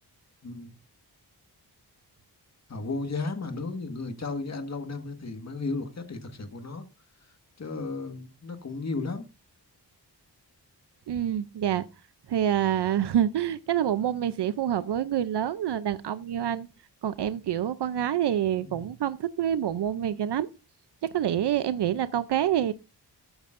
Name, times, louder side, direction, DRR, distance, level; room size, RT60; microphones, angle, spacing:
voice 1, 0.4-0.7 2.7-6.9 7.6-9.3 18.6-18.9, left 3 dB, 40° left, 1.6 m, -34 dB
voice 2, 11.1-11.9 12.3-16.7 17.0-20.5 21.1-22.7, right 10 dB, 75° right, 0.6 m, -27 dB
13.5 x 8.9 x 2.5 m
wide cardioid pair, 145°, 41 cm